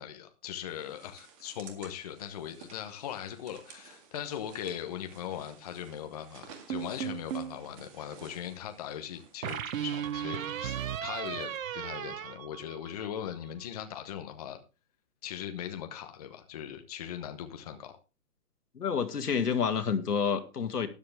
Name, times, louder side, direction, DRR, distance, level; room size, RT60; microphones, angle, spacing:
voice 1, 0.0-14.6 15.2-17.9, left 10 dB, 25° left, 6 dB, 1.0 m, -40 dB
sound 1, 0.7-10.2, right 6 dB, 20° right, 1.9 m, -55 dB
sound 2, 6.7-7.6 9.4-13.2, right 9 dB, 60° right, 0.9 m, -35 dB
voice 2, 18.7-20.9, left 6 dB, 85° left, 7 dB, 2.3 m, -29 dB
13.0 x 10.5 x 3.4 m, 0.30 s
hypercardioid pair, 165°, 45 cm